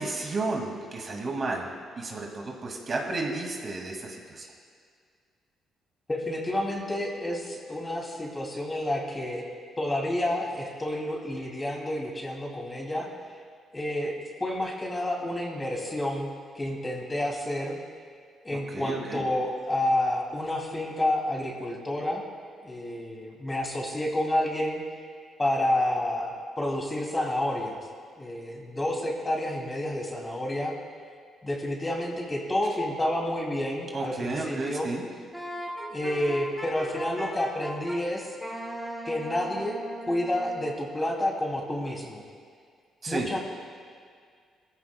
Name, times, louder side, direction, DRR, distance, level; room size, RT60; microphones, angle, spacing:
voice 1, 0.0-1.7 2.0-4.5 18.5-19.2 33.9-35.0 43.0-43.3, right 3 dB, 45° right, 0 dB, 2.1 m, -32 dB
voice 2, 6.1-9.4 9.8-13.1 13.7-14.1 14.4-16.3 16.5-17.8 18.4-22.2 22.6-24.8 25.4-27.8 28.2-30.7 31.4-34.9 35.8-38.3 39.0-39.8 40.1-42.2 43.1-43.4, left 1 dB, 20° left, -1 dB, 2.6 m, -29 dB
Wind instrument woodwind instrument, 35.3-38.0 38.4-40.8, right 1 dB, ahead, 2.4 m, -38 dB
19.0 x 14.5 x 2.2 m, 2.1 s
cardioid pair, 90°, 0 cm